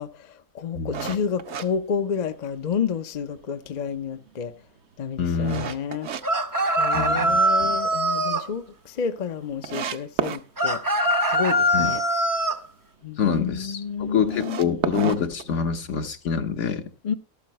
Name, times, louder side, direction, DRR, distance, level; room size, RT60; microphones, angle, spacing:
voice 1, 0.0-4.5 5.0-6.1 6.8-10.8 11.3-12.0 13.0-14.6 17.0-17.1, left 6 dB, 45° left, 0.6 m, -30 dB
voice 2, 0.7-1.1 5.2-5.7 6.9-7.8 11.7-11.9 13.2-16.9, left 6 dB, 60° left, 1.3 m, -26 dB
sound 1, 0.9-2.6 3.1-3.2 3.7-6.2 6.6-7.4 7.7-7.8 8.2-8.3 8.5-8.6 9.2-9.3 9.6-10.4 14.2-16.0, right 7 dB, 60° right, 1.0 m, -31 dB
Rooster Crows, 6.2-8.5 10.6-12.6, right 1 dB, 20° right, 0.6 m, -22 dB
12.5 x 12.5 x 3.0 m
omnidirectional pair, 1.4 m